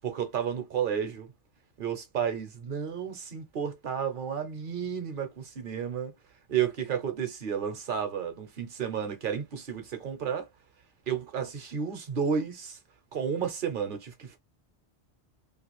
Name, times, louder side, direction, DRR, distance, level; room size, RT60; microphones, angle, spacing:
voice 1, 0.0-1.3 1.8-6.1 6.5-10.5 11.1-12.8 13.1-14.4, right 7 dB, 55° right, 0.9 m, -32 dB
2.5 x 2.4 x 3.0 m
omnidirectional pair, 1.1 m